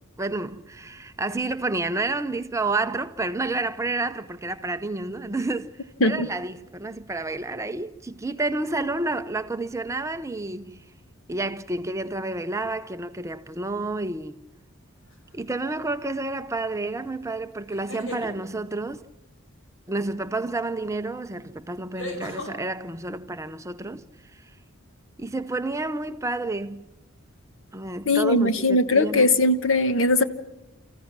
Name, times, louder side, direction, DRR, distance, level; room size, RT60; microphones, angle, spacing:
voice 1, 0.2-5.7 6.0-10.8 11.3-14.4 15.3-19.1 19.9-24.0 24.3-24.4 25.2-26.8 27.7-29.3, right 2 dB, 15° right, 0.6 m, -30 dB
sound 1, 15.1-15.5 17.7-18.3 20.6-20.7 22.0-22.5, left 1 dB, 80° left, 5.2 m, -36 dB
voice 2, 28.1-30.2, left 2 dB, 65° left, 1.1 m, -20 dB
30.0 x 15.0 x 6.0 m
head